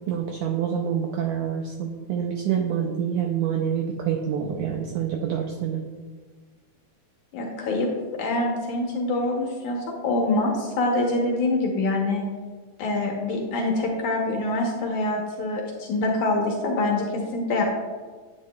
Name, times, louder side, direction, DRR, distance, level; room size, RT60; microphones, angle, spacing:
voice 1, 0.1-5.8, right 8 dB, 90° right, 3 dB, 1.7 m, -27 dB
voice 2, 7.3-12.2 12.8-17.6, left 2 dB, 70° left, 0 dB, 2.0 m, -25 dB
10.0 x 8.4 x 2.3 m, 1.4 s
omnidirectional pair, 4.3 m